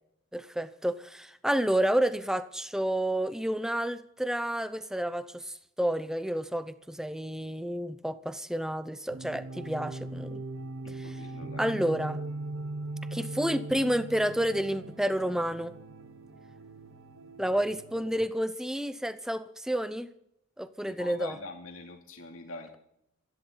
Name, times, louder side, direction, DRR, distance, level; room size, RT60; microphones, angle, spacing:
voice 1, 0.3-10.4 10.9-11.1 11.6-12.2 13.1-15.7 17.4-20.1 20.6-21.4, right 1 dB, 5° right, 12 dB, 0.6 m, -30 dB
sound 1, 9.1-18.3, right 2 dB, 75° right, 1.0 m, -40 dB
voice 2, 10.8-11.7 20.8-22.7, left 2 dB, 85° left, 3 dB, 2.7 m, -44 dB
27.0 x 11.5 x 3.9 m, 0.79 s
head